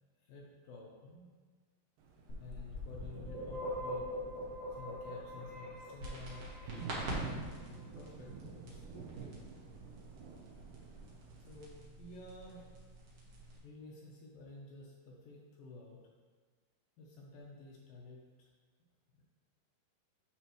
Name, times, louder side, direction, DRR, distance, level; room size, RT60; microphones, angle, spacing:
voice 1, 0.2-1.3 2.4-4.1 4.7-9.3 11.4-12.7 13.6-16.1 17.0-18.5 19.1-19.2, left 2 dB, 75° left, -2 dB, 2.3 m, -52 dB
Thunder, 2.0-11.7, right 6 dB, 80° right, 1.9 m, -50 dB
sound 1, 2.3-7.1, equal, 30° left, 2.0 m, -43 dB
sound 2, 6.0-13.6, right 1 dB, 60° right, 1.7 m, -47 dB
11.5 x 4.5 x 3.0 m, 1.5 s
omnidirectional pair, 4.6 m